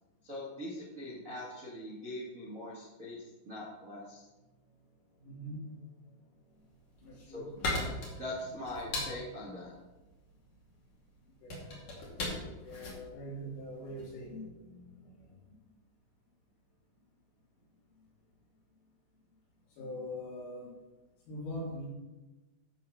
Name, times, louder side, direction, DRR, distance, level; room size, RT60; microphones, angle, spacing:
voice 1, 0.2-4.2 7.2-7.6 8.2-9.7, left 1 dB, 75° right, -7 dB, 0.7 m, -42 dB
voice 2, 5.2-6.2 6.5-6.6 7.0-7.5 11.2-11.6 12.3-15.5 19.7-20.7 21.3-21.9, equal, 80° left, -5 dB, 5.6 m, -43 dB
sound 1, 6.7-14.2, left 2 dB, 45° left, 3.0 m, -39 dB
13.5 x 4.9 x 5.7 m, 1.1 s
omnidirectional pair, 5.5 m